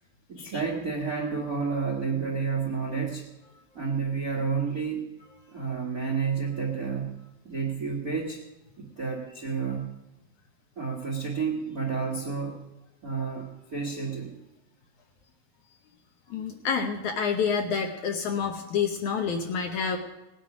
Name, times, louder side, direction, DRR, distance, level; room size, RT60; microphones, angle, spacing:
voice 1, 0.3-3.2 3.7-5.0 5.5-7.2 7.4-8.4 8.8-9.9 10.8-12.6 13.0-14.3 19.5-19.7, right 5 dB, 45° right, -1 dB, 1.1 m, -30 dB
voice 2, 16.3-20.0, left 6 dB, 70° left, 4 dB, 2.0 m, -28 dB
18.5 x 9.6 x 5.0 m, 1.0 s
omnidirectional pair, 4.2 m